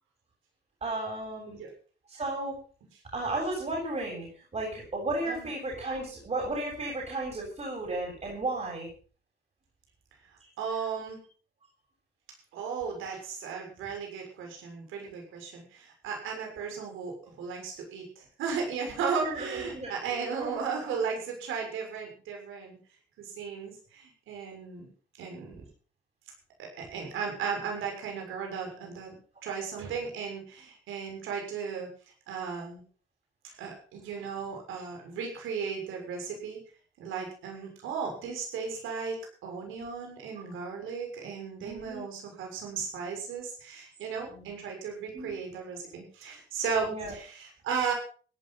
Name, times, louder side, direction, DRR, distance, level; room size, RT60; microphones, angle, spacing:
voice 1, 0.8-1.6 2.1-2.6 3.1-4.3 4.5-8.9 19.2-20.6 29.5-29.6 41.6-42.0 44.3-44.5 45.1-45.3 46.8-47.1, right 2 dB, 35° right, -2 dB, 7.8 m, -34 dB
voice 2, 10.6-11.2 12.5-22.8 23.2-24.9 25.2-25.6 26.6-29.2 29.4-31.9 32.3-32.8 33.4-36.6 37.0-47.9, right 6 dB, 85° right, 2 dB, 6.6 m, -35 dB
17.0 x 11.5 x 5.8 m, 0.41 s
cardioid pair, 90°, 20 cm